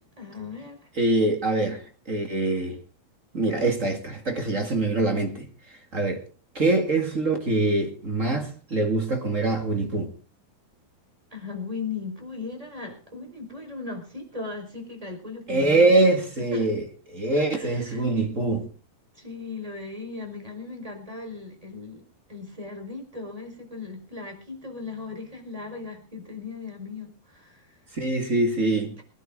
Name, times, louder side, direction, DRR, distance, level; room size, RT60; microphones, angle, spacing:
voice 1, 0.2-0.9 11.3-16.0 16.5-16.7 17.4-18.1 19.1-22.0 22.3-27.8, left 4 dB, 10° right, 4.4 m, -37 dB
voice 2, 1.0-2.8 3.3-5.5 5.9-6.2 6.5-10.1 15.5-18.7 27.9-28.9, right 2 dB, 30° right, 1.7 m, -24 dB
25.5 x 11.0 x 3.9 m
omnidirectional pair, 4.5 m